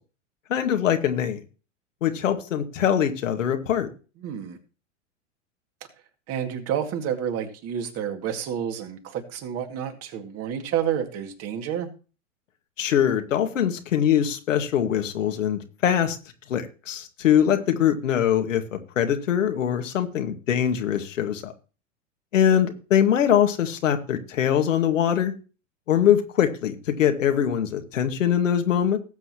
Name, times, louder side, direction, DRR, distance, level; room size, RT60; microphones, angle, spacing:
voice 1, 0.5-1.4 2.0-3.9 12.8-16.2 16.5-21.5 22.3-25.3 25.9-29.0, left 9 dB, 70° left, 6 dB, 2.1 m, -22 dB
voice 2, 4.2-4.6 6.3-11.9, right 9 dB, 35° right, 5 dB, 2.4 m, -29 dB
18.5 x 7.9 x 3.0 m, 0.35 s
hypercardioid pair, 105°, 39 cm